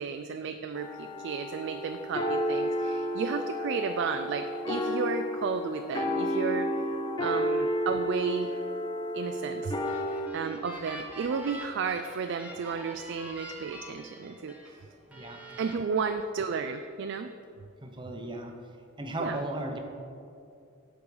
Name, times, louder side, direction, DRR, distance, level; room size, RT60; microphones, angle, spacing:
voice 1, 0.0-6.8 7.2-8.6 9.1-10.0 10.3-14.6 15.6-17.3 19.2-19.4, right 5 dB, 60° right, 8 dB, 0.3 m, -33 dB
sound 1, 0.7-10.3, equal, 20° left, 0.6 m, -31 dB
sound 2, 9.6-14.7 15.1-15.7, right 1 dB, 5° right, 1.1 m, -45 dB
voice 2, 15.1-15.6 17.8-18.5 19.0-19.8, right 1 dB, 25° right, 3 dB, 0.9 m, -36 dB
12.0 x 5.0 x 4.8 m, 2.5 s
head